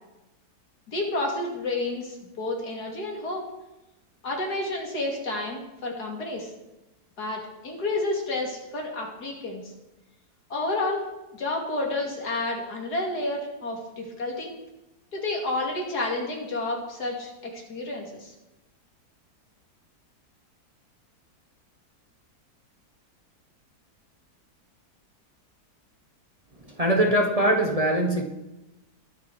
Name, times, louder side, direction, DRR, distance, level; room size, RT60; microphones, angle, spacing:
voice 1, 0.9-3.4 4.2-6.5 7.2-9.7 10.5-11.1 11.3-14.6 15.1-18.3, left 2 dB, 75° left, 0 dB, 3.1 m, -30 dB
voice 2, 26.7-28.2, right 1 dB, 25° right, 2 dB, 1.4 m, -22 dB
21.0 x 7.2 x 4.9 m, 0.98 s
omnidirectional pair, 1.7 m